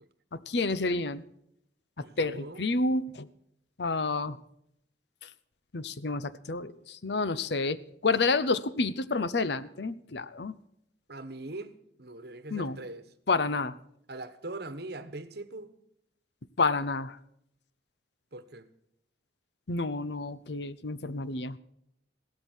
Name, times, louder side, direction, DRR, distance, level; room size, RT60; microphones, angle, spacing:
voice 1, 0.3-1.2 2.0-3.3 3.8-4.4 5.2-5.3 5.7-10.6 12.5-12.8 13.3-13.8 16.6-17.2 19.7-21.6, left 3 dB, 65° left, 0.8 m, -29 dB
voice 2, 2.0-2.7 11.1-13.0 13.5-13.6 14.1-15.7 18.3-18.7, right 2 dB, 60° right, 1.2 m, -41 dB
16.5 x 13.0 x 4.4 m
head